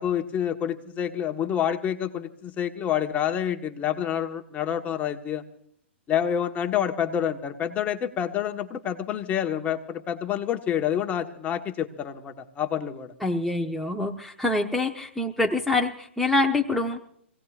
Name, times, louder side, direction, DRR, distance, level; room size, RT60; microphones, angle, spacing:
voice 1, 0.0-5.4 6.1-13.1, left 9 dB, 25° left, 5 dB, 1.4 m, -28 dB
voice 2, 13.2-17.0, left 2 dB, ahead, -1 dB, 1.0 m, -25 dB
26.0 x 17.5 x 2.5 m, 0.65 s
hypercardioid pair, 125°, 6 cm